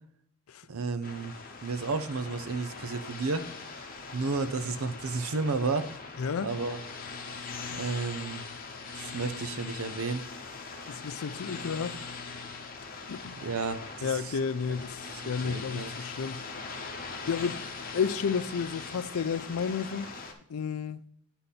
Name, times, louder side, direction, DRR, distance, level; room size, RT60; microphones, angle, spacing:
voice 1, 0.7-1.3 1.6-5.9 6.4-6.8 7.7-8.4 8.9-10.3 13.4-14.3 15.1-15.9, right 4 dB, 85° right, 0.7 m, -32 dB
sound 1, 1.0-20.3, left 4 dB, 40° left, 0.9 m, -41 dB
voice 2, 6.2-6.5 10.9-12.0 13.1-13.4 14.0-16.4 17.3-17.6 17.9-20.1 20.5-21.0, left 6 dB, 85° left, 0.4 m, -31 dB
9.6 x 3.9 x 4.1 m
head